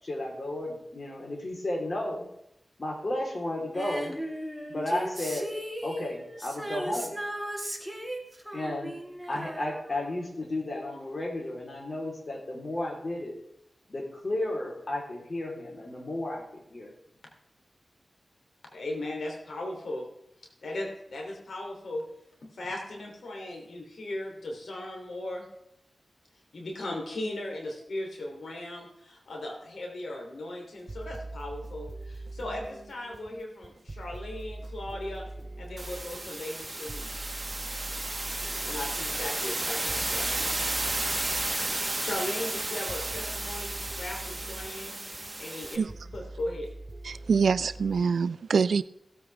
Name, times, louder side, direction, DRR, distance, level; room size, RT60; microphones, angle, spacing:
voice 1, 0.0-2.3 2.8-4.1 4.7-5.5 5.8-7.2 8.5-8.9 9.3-13.4 13.9-16.9, left 1 dB, 50° left, 0 dB, 3.9 m, -33 dB
Female singing, 3.7-10.4 10.7-10.8, equal, ahead, 2.2 m, -37 dB
voice 2, 18.7-20.1 20.6-22.1 22.4-25.5 26.5-35.3 35.6-37.7 38.6-40.5 42.0-45.0 45.4-46.7, left 1 dB, 80° left, 0 dB, 3.3 m, -37 dB
sound 1, 30.8-48.0, right 2 dB, 45° right, 0.7 m, -43 dB
sound 2, 35.8-45.8, right 2 dB, 30° right, 1.5 m, -33 dB
voice 3, 47.1-48.8, right 5 dB, 85° right, 17 dB, 0.4 m, -25 dB
16.5 x 8.4 x 3.5 m, 0.79 s
cardioid pair, 50°, 0 cm